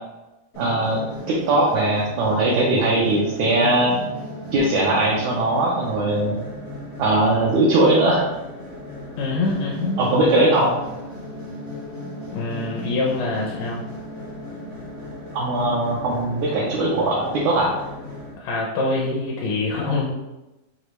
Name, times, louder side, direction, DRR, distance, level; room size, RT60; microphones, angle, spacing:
sound 1, 0.5-18.3, left 1 dB, 45° left, 0.8 m, -36 dB
voice 1, 0.6-4.0 4.5-6.4 7.0-8.2 10.0-10.8 15.3-17.7, right 2 dB, 75° right, -4 dB, 1.8 m, -20 dB
voice 2, 9.2-10.0 12.3-13.9 18.4-20.1, left 3 dB, 75° left, -2 dB, 2.2 m, -25 dB
6.6 x 2.4 x 3.0 m, 1.0 s
omnidirectional pair, 3.9 m